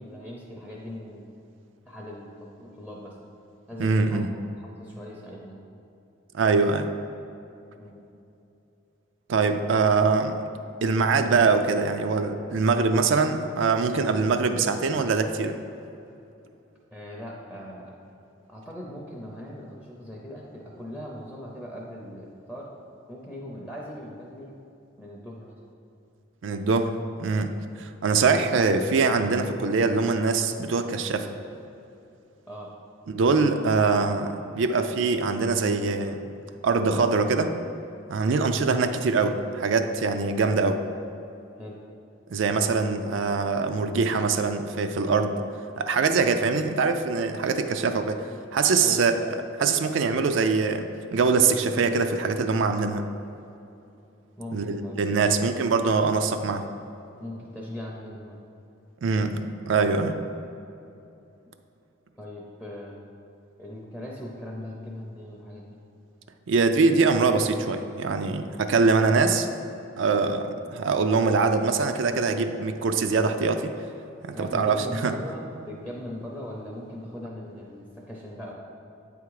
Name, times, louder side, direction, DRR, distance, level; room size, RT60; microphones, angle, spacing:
voice 1, 0.0-1.3 1.9-3.2 3.7-4.3 4.8-5.7 7.7-8.0 16.9-17.9 18.5-22.7 23.1-24.6 25.0-25.6 32.5-32.7 41.5-41.8 48.8-49.1 54.4-55.4 57.2-58.4 62.2-63.0 63.6-65.8 74.3-78.5, left 1 dB, 5° left, -3 dB, 0.5 m, -39 dB
voice 2, 3.8-4.3 6.3-6.9 9.3-10.4 10.8-15.6 26.4-27.5 27.8-31.3 33.1-36.2 36.6-37.5 38.1-40.8 42.3-45.4 45.8-49.1 49.6-50.8 51.1-53.1 54.5-56.6 59.0-60.2 66.5-69.5 70.0-73.7 74.2-75.1, right 4 dB, 70° right, 7 dB, 0.4 m, -23 dB
8.4 x 3.5 x 4.8 m, 2.7 s
head